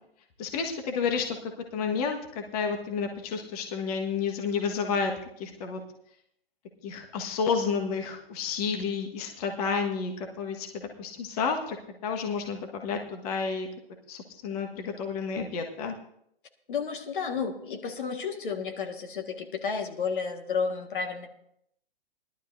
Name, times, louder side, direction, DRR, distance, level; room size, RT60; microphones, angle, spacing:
voice 1, 0.4-5.1 5.4-5.8 6.8-11.8 12.0-13.7 14.1-15.9, left 5 dB, 40° left, 3 dB, 1.5 m, -30 dB
voice 2, 16.7-21.3, left 5 dB, 55° left, 4 dB, 1.7 m, -32 dB
20.0 x 12.0 x 2.7 m, 0.73 s
figure-of-eight pair, 120°, 30 cm